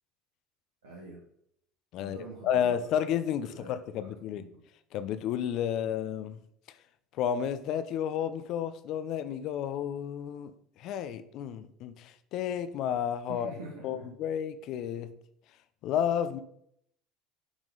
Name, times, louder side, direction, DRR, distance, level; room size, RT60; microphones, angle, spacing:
voice 1, 0.8-1.2 2.0-2.7 3.5-4.1 4.4-4.5 13.3-14.1, right 2 dB, 90° right, -4 dB, 1.4 m, -45 dB
voice 2, 1.9-4.4 4.9-6.4 7.1-13.5 13.8-15.1 15.8-16.4, left 9 dB, 60° left, 12 dB, 0.6 m, -31 dB
9.8 x 3.7 x 3.9 m, 0.71 s
hypercardioid pair, 75°, 0 cm